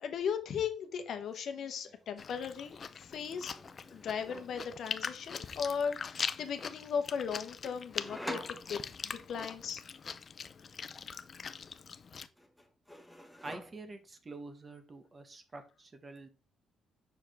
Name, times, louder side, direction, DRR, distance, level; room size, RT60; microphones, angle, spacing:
voice 1, 0.0-3.5 3.9-9.8, left 7 dB, 65° left, 8 dB, 0.8 m, -37 dB
sound 1, 0.9-1.2 1.5-2.3 3.3-4.7 7.6-9.3 11.5-12.1 12.4-14.1, equal, 5° left, 0.9 m, -48 dB
Chewing mastication, 2.2-12.3, left 6 dB, 45° left, 0.4 m, -42 dB
voice 2, 13.4-16.3, right 3 dB, 30° right, 8 dB, 1.0 m, -47 dB
5.9 x 4.8 x 3.4 m, 0.34 s
cardioid pair, 90°, 0 cm